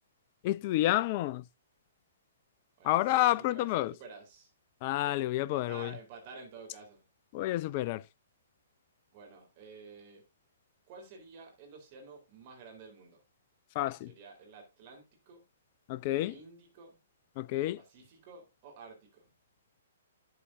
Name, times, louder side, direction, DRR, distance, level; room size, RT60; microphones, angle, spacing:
voice 1, 0.4-1.4 2.8-3.9 4.8-5.9 7.3-8.0 13.7-14.1 15.9-16.4 17.4-17.8, left 15 dB, 40° left, 0.5 m, -29 dB
voice 2, 2.8-4.5 5.0-5.2 5.5-7.0 9.1-10.2 10.9-13.2 14.1-15.4 16.3-17.0 17.8-19.2, right 4 dB, 40° right, 4.3 m, -51 dB
12.5 x 8.4 x 2.7 m
figure-of-eight pair, 125°, 0 cm